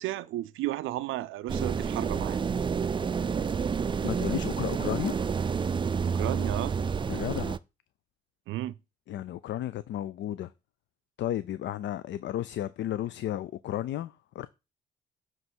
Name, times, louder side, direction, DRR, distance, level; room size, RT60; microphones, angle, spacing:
voice 1, 0.0-2.4 6.0-6.7 8.5-8.8, right 15 dB, 85° right, 0.5 m, -33 dB
sound 1, 1.5-7.6, right 6 dB, 25° right, 0.4 m, -29 dB
voice 2, 4.0-5.2 7.1-7.6 9.1-10.5 11.2-14.5, left 12 dB, 65° left, 0.5 m, -33 dB
7.6 x 3.0 x 6.1 m
cardioid pair, 90°, 20 cm